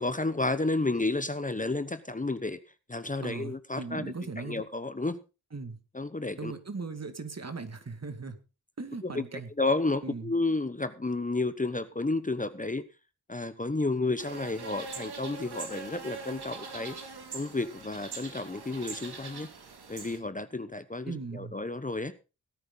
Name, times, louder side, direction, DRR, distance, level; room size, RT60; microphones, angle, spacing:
voice 1, 0.0-2.6 2.9-5.2 5.9-6.5 9.0-9.2 9.6-12.8 13.3-16.9 17.3-19.5 19.9-22.1, left 2 dB, 20° left, 12 dB, 1.0 m, -31 dB
voice 2, 3.2-4.6 5.5-5.8 6.4-8.4 8.8-9.5 10.0-10.3 21.1-21.6, right 4 dB, 40° right, 9 dB, 2.2 m, -38 dB
sound 1, 14.2-20.2, right 4 dB, 80° right, 2.7 m, -42 dB
18.0 x 9.1 x 3.9 m, 0.31 s
cardioid pair, 50°, 38 cm